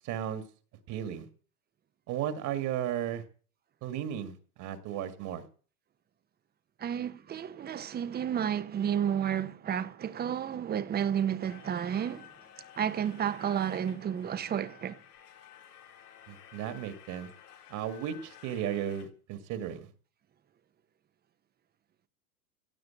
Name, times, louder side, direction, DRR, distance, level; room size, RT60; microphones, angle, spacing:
voice 1, 0.0-0.4 0.9-1.3 2.1-3.2 3.8-5.4 16.3-17.3 17.7-19.9, right 10 dB, 40° right, 2.0 m, -35 dB
voice 2, 6.8-12.3 12.7-15.0, right 9 dB, 20° right, 1.0 m, -31 dB
sound 1, 11.5-19.0, left 10 dB, 85° left, 3.7 m, -54 dB
16.5 x 7.6 x 8.7 m
hypercardioid pair, 120°, 45 cm